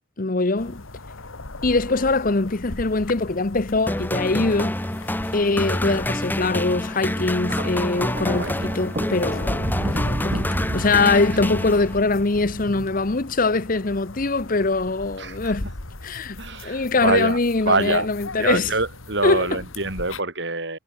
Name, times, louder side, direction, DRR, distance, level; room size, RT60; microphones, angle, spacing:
voice 1, 0.2-0.8 1.6-4.8 5.3-15.7 16.0-18.7 19.2-19.6, left 3 dB, 45° left, 0.9 m, -23 dB
sound 1, 0.6-20.2, left 2 dB, 90° left, 2.2 m, -40 dB
sound 2, 3.9-12.2, left 1 dB, 10° left, 1.4 m, -27 dB
Thunder, 7.4-13.7 14.7-15.0, right 1 dB, 40° right, 1.5 m, -31 dB
voice 2, 8.4-8.7 15.2-15.5 16.4-17.4 17.6-18.1 18.4-20.8, right 3 dB, 60° right, 6.3 m, -25 dB
head